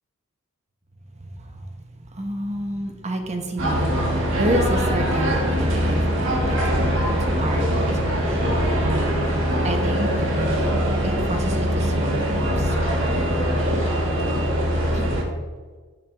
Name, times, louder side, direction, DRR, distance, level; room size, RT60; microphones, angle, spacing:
voice 1, 1.2-6.9 7.2-12.9 14.9-15.2, right 1 dB, 30° right, 4 dB, 1.5 m, -30 dB
sound 1, 3.6-15.2, equal, 60° right, 2.9 m, -22 dB
sound 2, 7.7-10.9 11.2-12.2 12.8-12.9, equal, 15° right, 3.8 m, -39 dB
12.5 x 9.2 x 3.7 m, 1.4 s
head